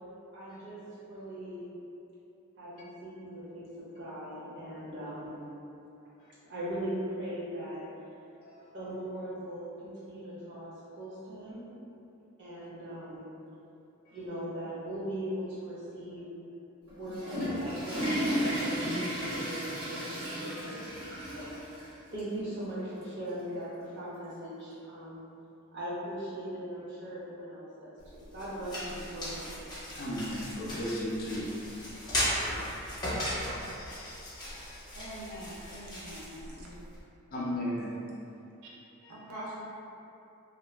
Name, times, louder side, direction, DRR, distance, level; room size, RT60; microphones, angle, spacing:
voice 1, 0.3-1.7 2.6-5.4 6.5-7.8 8.7-11.6 12.4-13.3 14.1-16.3 16.9-21.5 22.1-25.2 25.7-29.6, right 1 dB, 55° right, -9 dB, 0.8 m, -40 dB
voice 2, 8.4-8.7 14.1-14.2 20.4-20.7 29.9-31.7 32.1-32.5 32.7-35.0 35.3-36.0 37.3-38.0 39.0-39.3, equal, 40° left, -5 dB, 0.4 m, -38 dB
Water / Toilet flush, 16.9-21.9 22.2-22.3 23.0-23.1 24.4-24.5, equal, 70° right, 1.2 m, -33 dB
sound 1, 28.0-37.0, equal, 20° left, 0.8 m, -37 dB
voice 3, 34.9-36.8 37.6-37.7 38.6-38.7 39.1-39.6, right 1 dB, 85° right, -6 dB, 0.6 m, -44 dB
2.5 x 2.0 x 3.2 m, 2.8 s
head